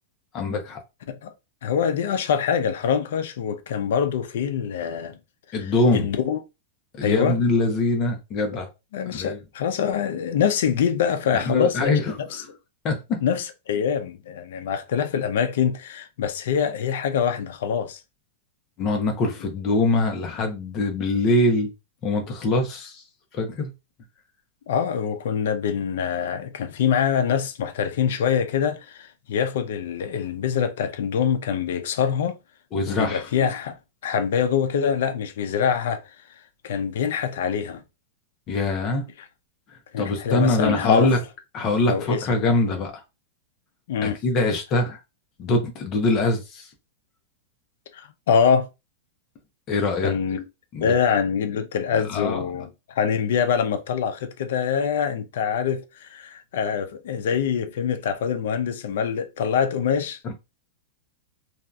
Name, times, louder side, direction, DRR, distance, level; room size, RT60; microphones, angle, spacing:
voice 1, 0.3-0.8 5.5-6.1 6.9-8.7 9.0-9.4 11.3-12.1 12.4-12.5 12.8-13.2 18.8-21.7 22.0-23.0 23.3-23.7 32.7-33.3 38.5-39.0 40.0-41.2 41.5-43.0 44.0-45.0 45.4-46.7 49.7-50.1 50.7-50.9 52.1-52.4 60.2-60.3, left 2 dB, 25° left, 0.7 m, -23 dB
voice 2, 1.6-5.2 5.5-6.4 7.0-7.4 8.9-12.0 12.3-12.4 13.2-18.0 24.7-32.4 32.9-33.7 34.0-36.0 36.6-37.8 39.9-41.1 41.9-42.3 43.9-44.2 47.9-48.7 50.0-50.5 50.8-60.2, left 7 dB, 70° left, 0.5 m, -24 dB
2.7 x 2.4 x 2.3 m
supercardioid pair, 160°, 0 cm